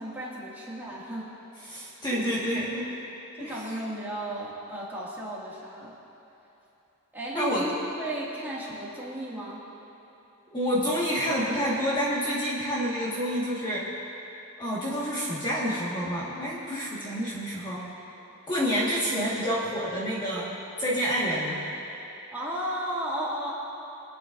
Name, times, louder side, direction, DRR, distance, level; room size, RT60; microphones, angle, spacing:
voice 1, 0.0-1.3 2.1-2.3 3.4-5.9 7.1-7.7 8.0-9.6 22.3-23.5, right 1 dB, 10° right, -7 dB, 2.2 m, -34 dB
voice 2, 1.7-2.9 3.4-3.8 7.3-7.6 10.5-13.8 14.6-17.8 18.5-20.5 20.8-21.6, equal, 20° left, -7 dB, 1.7 m, -28 dB
23.0 x 9.4 x 2.6 m, 3.0 s
head